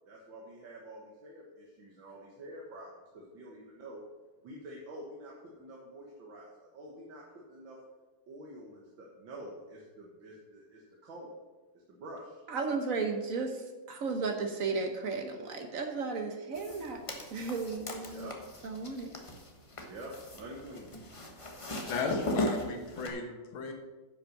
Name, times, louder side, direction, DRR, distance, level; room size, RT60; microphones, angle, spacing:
voice 1, 0.1-4.0 4.4-7.8 8.3-11.3 11.7-12.4 18.0-18.4 19.8-20.9, right 1 dB, 70° right, -2 dB, 2.1 m, -47 dB
voice 2, 12.5-17.0 17.3-18.3 18.6-19.1, right 4 dB, 50° right, 5 dB, 1.2 m, -34 dB
sound 1, 16.5-23.1, left 1 dB, 25° left, 0.7 m, -38 dB
voice 3, 21.9-23.7, left 4 dB, 80° left, 3 dB, 2.0 m, -35 dB
10.0 x 5.7 x 6.4 m, 1.2 s
omnidirectional pair, 2.2 m